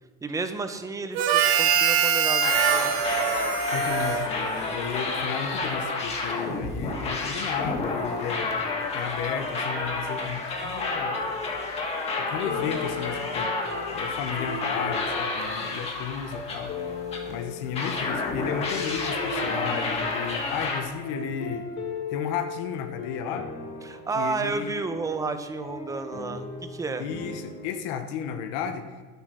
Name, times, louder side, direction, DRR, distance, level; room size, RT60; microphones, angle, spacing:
voice 1, 0.2-3.0 23.8-27.1, right 4 dB, 15° right, 9 dB, 0.9 m, -31 dB
Harmonica, 1.1-4.9, right 7 dB, 70° right, 1.4 m, -24 dB
sound 1, 2.4-17.3 17.8-20.8, left 3 dB, 30° left, 2.1 m, -30 dB
voice 2, 3.7-8.6 8.9-11.2 12.2-17.0 17.3-21.7 22.1-23.5 24.1-24.8 27.0-28.9, left 8 dB, 85° left, 7 dB, 1.1 m, -33 dB
sound 2, 11.2-12.1 12.4-27.8, left 4 dB, 60° left, 3.3 m, -37 dB
10.5 x 8.1 x 6.2 m, 1.5 s
cardioid pair, 150°, 21 cm